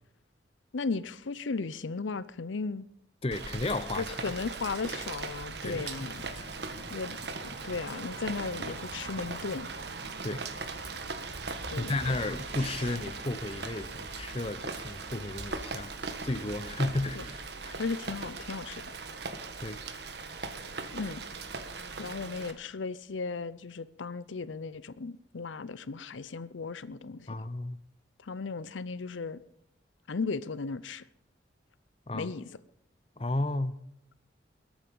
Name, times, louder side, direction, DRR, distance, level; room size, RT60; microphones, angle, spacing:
voice 1, 0.7-2.9 3.9-6.2 6.9-7.2 7.6-9.7 11.7-12.2 17.2-17.3 17.8-18.9 20.9-21.2 22.0-27.5 28.2-29.4 30.1-31.0 32.1-32.5, left 4 dB, 90° left, 16 dB, 0.6 m, -36 dB
voice 2, 3.2-4.1 5.6-6.5 10.2-10.5 11.3-11.4 11.8-15.9 16.2-17.2 17.6-17.8 19.6-19.8 27.3-27.8 32.1-32.3 33.2-33.8, left 2 dB, 30° left, 12 dB, 0.8 m, -33 dB
Rain, 3.3-22.5, right 4 dB, 60° right, 1.5 m, -39 dB
sound 1, 10.5-17.4, right 1 dB, 35° right, 4.0 m, -47 dB
21.0 x 9.0 x 5.5 m, 0.75 s
head